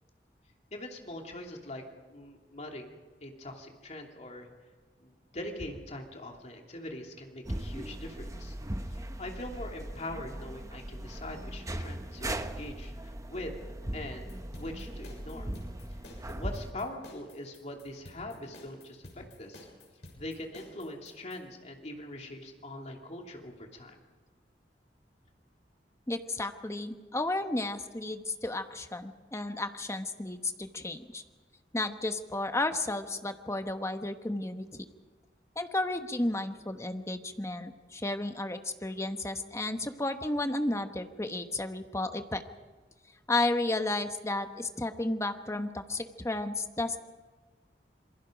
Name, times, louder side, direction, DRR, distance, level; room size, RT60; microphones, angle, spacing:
voice 1, 0.7-1.8 2.1-2.9 3.2-4.5 5.0-8.5 8.9-13.6 13.9-15.5 16.3-19.6 20.2-24.0, left 1 dB, 40° left, 1 dB, 2.9 m, -42 dB
sound 1, 7.5-16.7, right 1 dB, 20° right, 1.0 m, -39 dB
sound 2, 14.3-21.4, left 1 dB, 85° left, 6.9 m, -51 dB
voice 2, 26.1-31.2 31.7-34.7 35.6-42.4 43.3-47.0, left 2 dB, 15° left, 7 dB, 1.1 m, -33 dB
27.0 x 22.5 x 5.2 m, 1.4 s
head